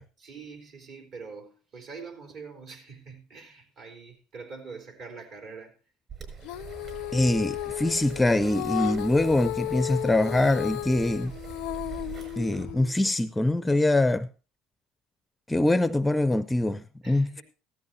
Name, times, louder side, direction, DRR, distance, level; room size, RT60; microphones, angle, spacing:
voice 1, 0.2-5.7 17.0-17.4, right 5 dB, 60° right, 3.7 m, -44 dB
sound 1, 6.1-12.7, right 6 dB, 40° right, 6.1 m, -43 dB
Female singing, 6.4-12.9, left 16 dB, 75° left, 0.5 m, -34 dB
voice 2, 7.1-11.3 12.4-14.3 15.5-17.4, left 1 dB, 10° left, 0.5 m, -24 dB
15.5 x 13.0 x 2.8 m
supercardioid pair, 115°, 0 cm